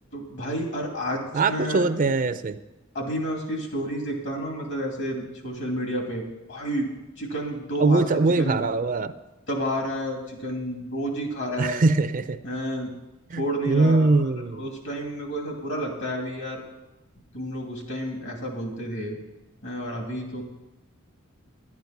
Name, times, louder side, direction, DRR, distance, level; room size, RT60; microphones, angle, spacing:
voice 1, 0.1-1.9 2.9-6.9 7.2-8.0 8.4-8.6 9.5-11.8 12.4-12.9 13.4-16.6 17.3-19.2 19.6-20.4, equal, 60° left, 1 dB, 2.6 m, -30 dB
voice 2, 1.3-2.6 7.8-9.1 11.6-12.4 13.3-14.7, right 3 dB, 40° right, 11 dB, 0.5 m, -22 dB
11.0 x 9.6 x 5.8 m, 1.0 s
head